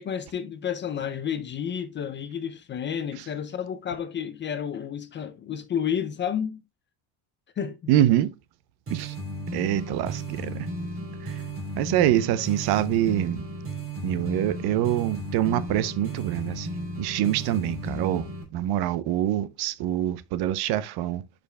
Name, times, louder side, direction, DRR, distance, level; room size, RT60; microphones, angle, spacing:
voice 1, 0.0-6.6 7.6-7.8, left 8 dB, 25° left, 0.4 m, -31 dB
voice 2, 7.9-8.3 8.9-9.2 9.5-10.7 11.2-11.4 11.8-13.4 14.0-16.7 17.0-21.2, right 12 dB, 55° right, 0.7 m, -25 dB
sound 1, 8.9-18.4, right 1 dB, 30° right, 2.8 m, -34 dB
11.0 x 5.1 x 2.2 m
cardioid pair, 140°, 45 cm